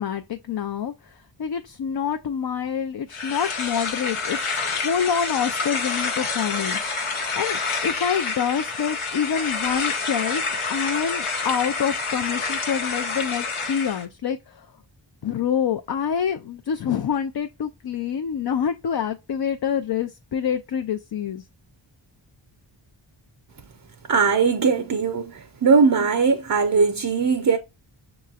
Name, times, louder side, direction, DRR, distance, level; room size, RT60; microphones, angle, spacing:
voice 1, 0.0-14.7 15.2-21.4, left 8 dB, 50° left, 0.5 m, -27 dB
sound 1, 3.1-14.0, left 4 dB, 80° left, 1.0 m, -28 dB
voice 2, 24.1-27.6, right 5 dB, 45° right, 0.6 m, -20 dB
6.6 x 3.0 x 2.4 m
cardioid pair, 45°, 49 cm